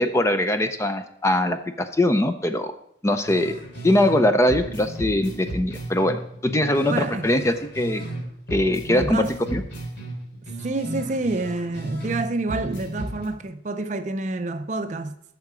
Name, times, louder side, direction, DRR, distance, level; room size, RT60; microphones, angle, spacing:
voice 1, 0.0-2.7 3.0-3.6 3.8-8.0 8.5-9.6, left 1 dB, 15° left, 0.4 m, -22 dB
sound 1, 3.2-4.2 4.5-8.2 8.5-12.2 12.5-13.3, right 1 dB, 85° left, 3.4 m, -34 dB
voice 2, 6.9-7.3 8.9-9.6 10.6-15.1, right 2 dB, 40° right, 0.5 m, -28 dB
8.5 x 6.5 x 4.9 m
head